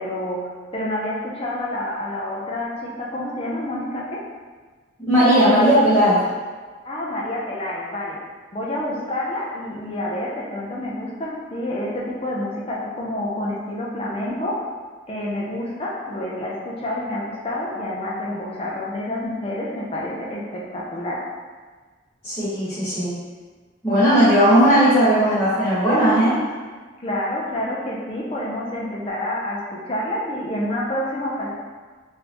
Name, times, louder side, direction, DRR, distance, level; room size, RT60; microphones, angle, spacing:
voice 1, 0.0-4.2 6.8-8.2 8.5-14.6 15.1-21.3 27.0-31.5, left 1 dB, 30° left, -4 dB, 0.5 m, -28 dB
voice 2, 5.0-6.2 22.2-23.1 23.8-26.4, equal, 10° left, -16 dB, 1.0 m, -16 dB
3.7 x 2.7 x 2.9 m, 1.4 s
head